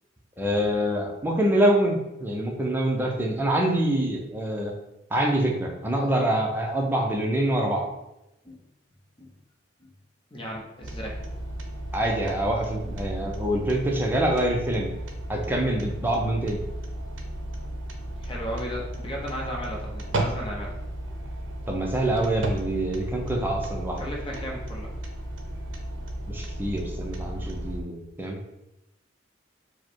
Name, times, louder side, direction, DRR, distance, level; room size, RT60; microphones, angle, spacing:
voice 1, 0.4-4.7 5.1-7.9 11.9-14.9 15.3-16.6 21.7-24.0 26.3-28.4, right 1 dB, 10° right, -1 dB, 0.6 m, -25 dB
voice 2, 10.3-11.2 18.2-20.8 24.0-24.9, equal, 25° left, -2 dB, 0.8 m, -35 dB
sound 1, 10.8-27.8, right 1 dB, 75° right, 0.6 m, -34 dB
4.8 x 2.1 x 4.5 m, 0.90 s
head